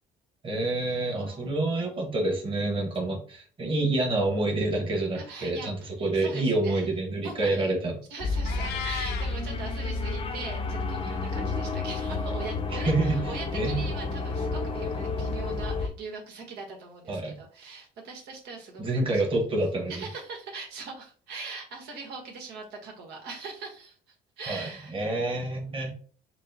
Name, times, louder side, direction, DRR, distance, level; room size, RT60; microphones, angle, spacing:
voice 1, 0.4-8.0 12.7-13.2 13.5-13.8 17.1-17.3 18.8-20.0 24.5-25.9, right 2 dB, 30° right, 0 dB, 1.4 m, -27 dB
voice 2, 1.2-1.5 5.1-6.9 7.2-7.7 8.1-19.2 19.9-24.9, right 4 dB, 80° right, 1 dB, 1.2 m, -41 dB
sound 1, 8.2-15.9, left 3 dB, 35° left, 0.6 m, -31 dB
Meow, 8.5-9.3, left 6 dB, 75° left, 0.7 m, -34 dB
6.1 x 2.1 x 2.9 m, 0.43 s
cardioid pair, 110°, 17 cm